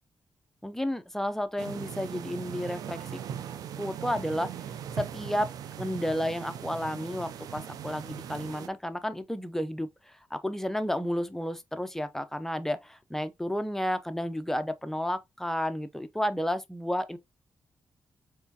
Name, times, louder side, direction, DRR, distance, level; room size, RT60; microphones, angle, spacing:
voice 1, 0.6-3.2 3.8-4.5 5.0-17.2, equal, 5° left, 0.7 m, -32 dB
sound 1, 1.6-8.7, right 9 dB, 85° right, 0.4 m, -39 dB
4.3 x 3.3 x 2.8 m
cardioid pair, 60°, 6 cm